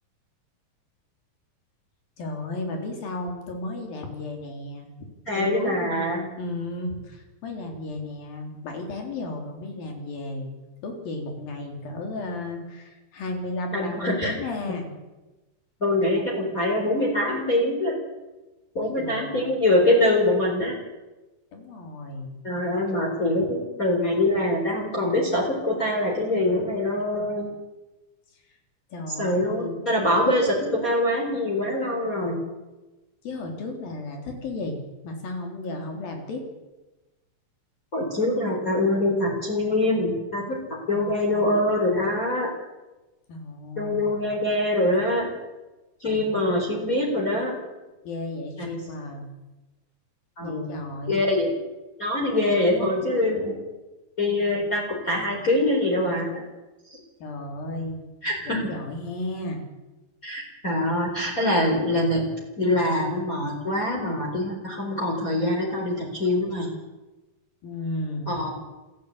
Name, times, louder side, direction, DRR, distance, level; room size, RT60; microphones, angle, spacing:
voice 1, 2.2-4.9 5.3-10.5 10.8-14.9 18.8-19.4 21.5-22.3 28.9-29.8 33.2-34.8 35.0-36.4 43.3-44.3 46.0-46.5 48.0-49.2 50.4-51.2 57.2-58.0 58.5-59.6 60.3-60.4 67.6-68.3, left 2 dB, 75° left, 3 dB, 5.6 m, -34 dB
voice 2, 5.3-6.2 13.7-14.3 15.8-17.9 18.7-20.7 22.4-27.5 29.2-32.4 37.9-40.6 40.9-42.5 43.8-45.3 46.0-47.5 50.4-50.7 51.1-51.5 52.0-53.6 54.2-56.4 56.9-57.0 58.2-58.6 60.2-62.3 62.6-66.7 68.3-68.5, left 1 dB, 20° left, -2 dB, 4.5 m, -24 dB
27.5 x 15.0 x 8.6 m, 1.1 s
omnidirectional pair, 4.2 m